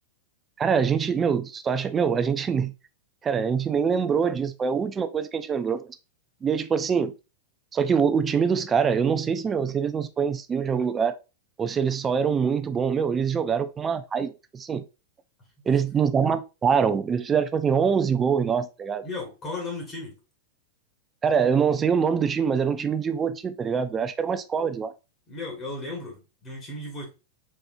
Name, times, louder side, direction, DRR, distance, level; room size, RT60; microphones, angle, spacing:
voice 1, 0.6-2.7 3.2-6.0 6.4-7.1 7.7-11.1 11.6-14.8 15.7-19.0 21.2-24.9, right 6 dB, 20° right, 0.4 m, -24 dB
voice 2, 19.0-20.1 25.3-27.1, left 2 dB, 30° left, 1.5 m, -35 dB
4.3 x 3.4 x 2.6 m
figure-of-eight pair, 95°, 0 cm